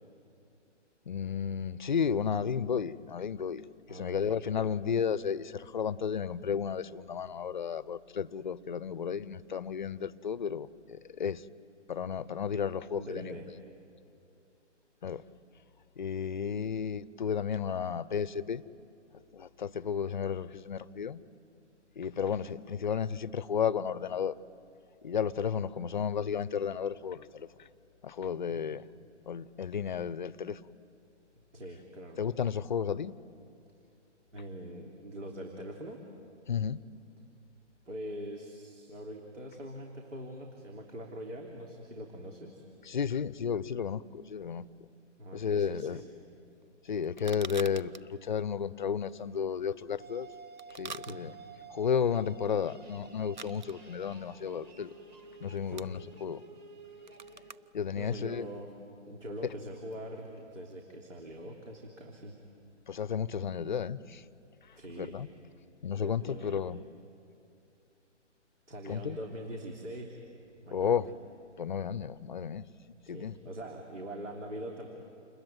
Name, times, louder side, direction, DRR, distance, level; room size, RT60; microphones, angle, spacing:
voice 1, 1.1-3.6 3.9-11.4 11.9-13.4 15.0-15.2 16.0-18.6 19.3-21.2 22.0-24.4 25.0-27.5 28.0-28.9 29.3-30.6 32.2-33.2 36.5-36.8 42.9-44.7 45.3-46.0 46.8-50.3 50.8-51.3 51.7-54.9 55.4-56.4 57.7-58.5 62.9-64.2 65.0-65.3 65.8-66.8 68.9-69.2 70.7-71.1 71.6-72.6 73.1-73.4, left 7 dB, 40° left, 0.6 m, -33 dB
voice 2, 3.9-4.4 12.9-13.5 28.5-28.7 31.5-32.2 34.3-36.0 37.9-42.6 45.2-46.0 50.9-51.2 55.6-55.8 58.0-58.7 59.1-62.4 64.7-65.2 65.9-66.6 68.7-70.2 70.6-71.0 73.1-74.9, right 1 dB, 80° right, 3.5 m, -43 dB
sound 1, 46.5-60.9, right 5 dB, 40° right, 0.6 m, -50 dB
sound 2, 50.0-57.5, right 3 dB, 15° right, 1.6 m, -51 dB
29.0 x 21.5 x 9.1 m
figure-of-eight pair, 150°, 36 cm